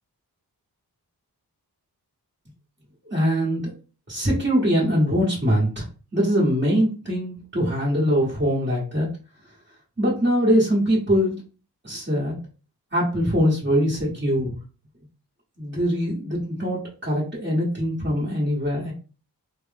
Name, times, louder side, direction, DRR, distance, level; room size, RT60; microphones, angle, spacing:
voice 1, 3.1-3.7 4.1-5.8 6.1-9.1 10.0-11.4 11.8-12.4 12.9-14.6 15.6-18.9, equal, 30° right, -7 dB, 1.3 m, -22 dB
3.0 x 2.1 x 3.4 m, 0.35 s
wide cardioid pair, 60°, 39 cm